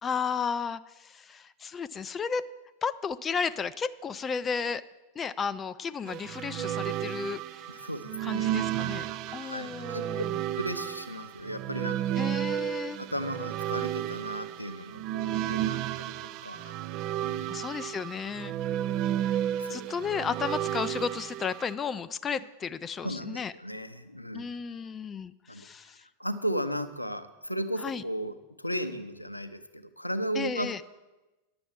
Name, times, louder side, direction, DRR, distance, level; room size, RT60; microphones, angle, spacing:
voice 1, 0.0-2.4 2.8-4.8 5.2-7.7 8.2-10.4 12.2-13.0 17.5-18.5 19.7-23.5 24.3-26.0 27.8-28.0 30.3-30.8, left 6 dB, 20° left, 14 dB, 0.3 m, -33 dB
sound 1, 6.1-21.7, right 12 dB, 40° right, 0.4 m, -32 dB
voice 2, 7.7-8.5 9.3-10.1 10.5-12.1 13.0-16.8 17.2-17.5 19.5-19.9 23.0-24.4 25.5-25.7 26.2-30.8, equal, 90° left, 10 dB, 0.6 m, -35 dB
10.5 x 6.9 x 7.3 m, 1.1 s
figure-of-eight pair, 90°, 0 cm